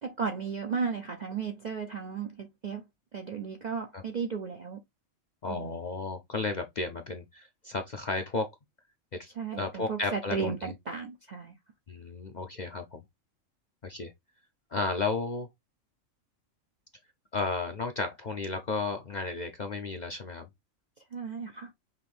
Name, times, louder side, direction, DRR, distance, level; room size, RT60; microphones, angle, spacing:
voice 1, 0.0-2.8 3.1-4.8 5.5-5.8 9.4-11.5 21.1-21.7, right 5 dB, 55° right, 0.5 m, -34 dB
voice 2, 5.4-8.5 9.2-10.7 11.9-13.0 13.8-14.1 14.7-15.5 17.3-20.5, left 3 dB, 50° left, 0.5 m, -33 dB
5.7 x 2.6 x 3.2 m
omnidirectional pair, 1.4 m